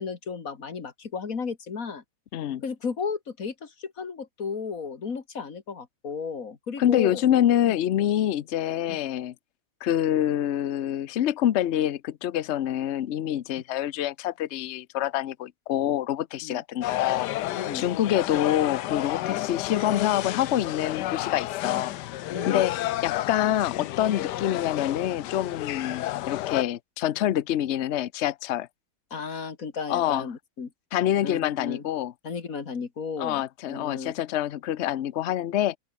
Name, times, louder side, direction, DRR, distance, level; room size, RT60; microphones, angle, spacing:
voice 1, 0.0-2.0 2.6-7.2 8.9-9.0 16.4-16.6 17.5-17.9 19.2-19.4 22.3-22.6 29.1-30.7 31.2-31.8 32.2-33.4 33.7-34.1, left 5 dB, 45° left, 2.3 m, -34 dB
voice 2, 2.3-2.6 6.8-9.3 9.8-17.3 17.7-22.7 23.0-28.7 29.9-30.3 30.9-32.1 33.2-35.8, left 11 dB, 90° left, 0.6 m, -26 dB
sound 1, 16.8-26.6, left 15 dB, 70° left, 1.1 m, -31 dB
open air
omnidirectional pair, 2.1 m